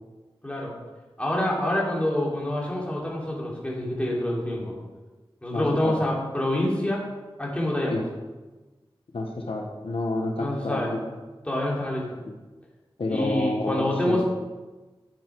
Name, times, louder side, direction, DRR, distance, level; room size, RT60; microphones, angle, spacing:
voice 1, 1.2-4.7 5.4-7.1 7.4-8.0 10.4-11.0 11.5-12.1 13.1-14.2, left 1 dB, 15° left, -4 dB, 3.0 m, -27 dB
voice 2, 5.5-6.0 7.9-8.0 9.1-11.0 13.0-14.2, left 2 dB, 85° left, 2 dB, 1.2 m, -29 dB
10.5 x 7.2 x 4.6 m, 1.2 s
wide cardioid pair, 70°, 9 cm